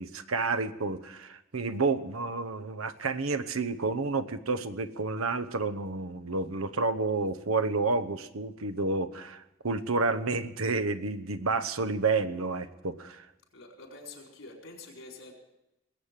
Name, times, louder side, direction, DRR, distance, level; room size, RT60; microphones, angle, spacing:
voice 1, 0.0-13.3, right 3 dB, 90° right, 12 dB, 0.9 m, -30 dB
voice 2, 13.5-15.3, left 2 dB, 70° left, 0 dB, 4.5 m, -47 dB
21.0 x 8.4 x 7.4 m, 0.92 s
head